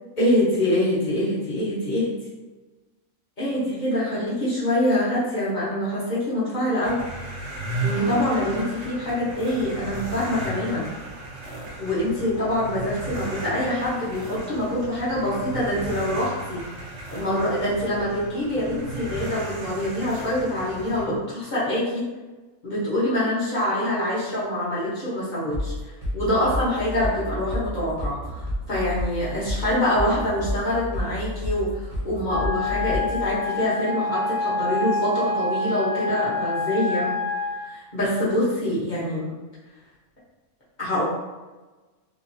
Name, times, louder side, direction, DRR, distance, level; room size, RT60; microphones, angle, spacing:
voice 1, 0.2-2.1 3.4-7.0 7.8-10.9 11.8-16.6 17.1-22.1 22.6-25.7 26.1-37.1 37.6-39.3 40.8-41.0, left 1 dB, 40° left, -9 dB, 1.2 m, -25 dB
sound 1, 6.8-21.1, right 2 dB, 65° right, 1.0 m, -35 dB
sound 2, 25.5-33.4, left 1 dB, 35° right, 0.8 m, -30 dB
Wind instrument woodwind instrument, 32.3-37.6, left 3 dB, 70° left, 1.2 m, -27 dB
3.0 x 2.5 x 2.7 m, 1.2 s
omnidirectional pair, 1.3 m